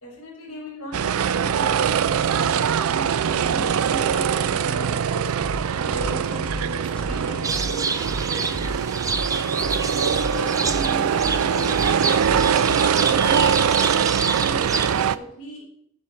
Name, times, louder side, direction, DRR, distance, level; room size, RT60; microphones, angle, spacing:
voice 1, 0.0-5.3 5.8-8.8 9.9-13.9 14.2-15.7, equal, 75° left, -7 dB, 3.9 m, -37 dB
sound 1, 0.9-15.2, right 7 dB, 75° right, 0.4 m, -22 dB
sound 2, 5.4-13.8, equal, 5° left, 1.0 m, -35 dB
sound 3, 7.4-15.1, right 4 dB, 15° right, 0.4 m, -28 dB
9.5 x 4.4 x 7.4 m, 0.65 s
head